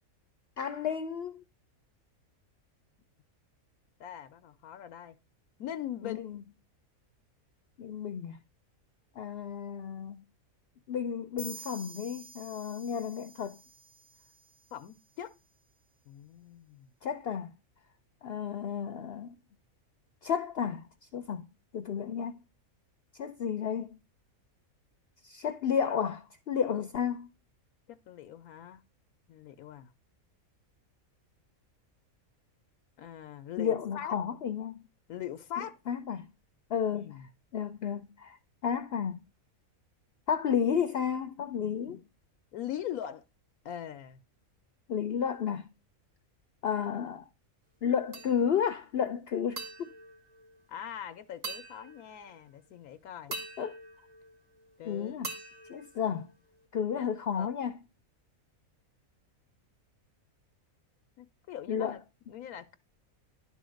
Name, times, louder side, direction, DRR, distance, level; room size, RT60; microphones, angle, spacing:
voice 1, 0.6-1.4 6.0-6.4 7.8-8.4 9.2-10.2 10.9-13.6 17.0-17.5 18.2-19.4 20.2-20.9 21.1-21.5 21.7-22.4 23.2-24.0 25.2-27.3 33.6-34.8 35.6-36.3 36.7-37.2 37.5-38.4 38.6-39.2 40.3-42.0 44.9-45.7 46.6-47.3 47.8-49.9 53.6-53.7 54.8-55.3 55.7-56.3 56.7-57.8 61.7-61.9, left 7 dB, 55° left, 0.8 m, -32 dB
voice 2, 4.0-5.2 5.6-6.2 14.7-15.3 16.1-16.9 27.9-28.8 29.3-29.9 33.0-34.2 35.1-35.7 36.9-37.3 42.5-43.2 43.6-44.2 50.7-53.3 54.8-55.1 57.0-57.5 61.2-62.0 62.3-62.8, left 10 dB, 85° left, 1.2 m, -41 dB
sound 1, 11.4-15.0, right 4 dB, 85° right, 1.8 m, -50 dB
sound 2, 48.1-48.7 49.6-51.0 51.4-52.5 53.3-54.8 55.2-56.7, right 3 dB, 65° right, 2.0 m, -44 dB
11.0 x 3.8 x 6.3 m
omnidirectional pair, 1.5 m